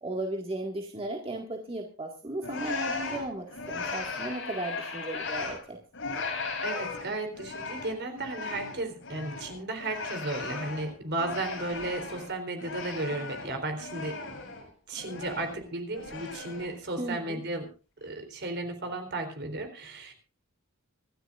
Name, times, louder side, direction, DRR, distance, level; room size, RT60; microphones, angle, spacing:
voice 1, 0.0-5.8 17.0-17.4, right 2 dB, 25° right, 1 dB, 1.9 m, -35 dB
sound 1, 2.4-5.6 5.9-12.3 12.6-14.6 14.9-15.6 15.9-16.7, left 4 dB, 65° left, 6.9 m, -37 dB
voice 2, 6.6-14.2 14.9-17.7 18.0-20.1, right 2 dB, 55° right, 6 dB, 3.7 m, -34 dB
26.0 x 12.5 x 2.5 m, 0.33 s
head